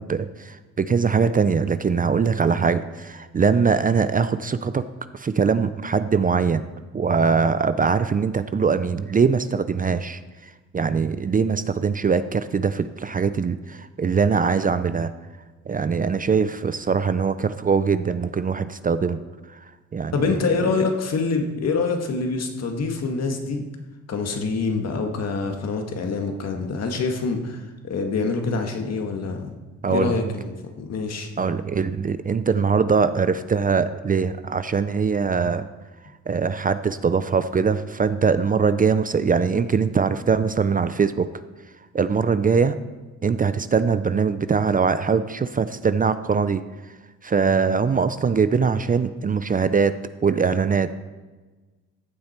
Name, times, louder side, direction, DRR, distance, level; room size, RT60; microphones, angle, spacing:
voice 1, 0.0-4.8 5.1-6.6 6.9-15.1 15.7-19.2 19.5-19.6 19.9-20.1 29.8-30.1 31.4-35.7 36.3-41.3 41.9-42.8 43.2-46.6 47.2-50.0 50.2-50.9, right 5 dB, 30° right, 12 dB, 0.5 m, -22 dB
voice 2, 20.1-23.7 24.1-29.5 29.9-31.3, left 4 dB, 55° left, 4 dB, 1.9 m, -25 dB
15.0 x 8.6 x 4.5 m, 1.3 s
cardioid pair, 90°, 30 cm